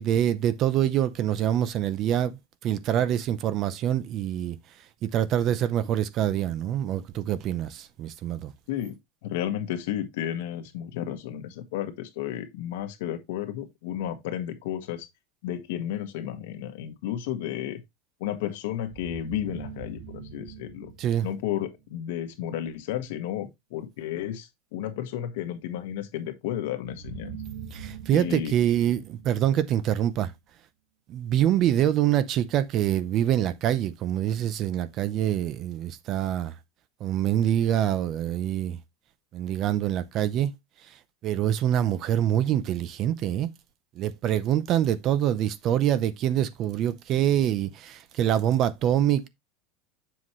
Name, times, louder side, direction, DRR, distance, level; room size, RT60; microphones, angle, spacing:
voice 1, 0.0-2.4 2.6-4.6 5.0-8.5 21.0-21.3 27.7-30.3 31.1-36.5 37.0-38.8 39.3-40.5 41.2-43.5 44.0-49.3, right 11 dB, 30° right, 0.5 m, -25 dB
voice 2, 8.7-15.1 15.4-17.8 18.2-20.9 21.2-27.4 28.1-28.5, left 11 dB, 65° left, 1.5 m, -32 dB
sound 1, 18.9-21.9 26.8-30.0, right 7 dB, 70° right, 1.7 m, -42 dB
7.5 x 5.7 x 3.1 m
supercardioid pair, 180°, 0 cm